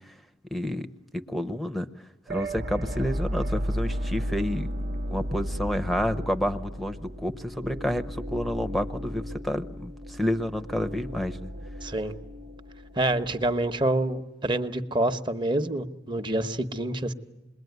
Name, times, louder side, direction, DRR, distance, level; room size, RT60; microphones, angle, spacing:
voice 1, 0.5-0.9 1.1-1.9 2.3-4.7 5.1-11.5, equal, ahead, 12 dB, 0.8 m, -29 dB
sound 1, 2.3-14.2, equal, 60° right, 1.0 m, -34 dB
voice 2, 11.8-12.1 13.0-17.1, right 1 dB, 25° right, 8 dB, 1.0 m, -27 dB
27.5 x 21.5 x 9.4 m, 1.1 s
head